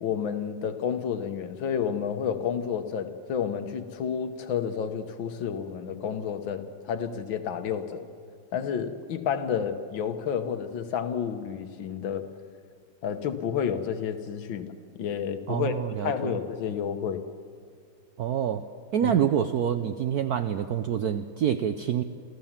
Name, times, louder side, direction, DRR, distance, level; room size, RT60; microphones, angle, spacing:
voice 1, 0.0-8.1 8.5-12.3 13.0-14.7 15.0-15.7 16.0-17.2 19.0-19.2, left 7 dB, 70° left, 9 dB, 1.7 m, -30 dB
voice 2, 15.5-16.4 18.2-18.6 18.9-22.0, right 9 dB, 70° right, 10 dB, 0.9 m, -26 dB
27.5 x 14.5 x 7.3 m, 2.2 s
omnidirectional pair, 2.3 m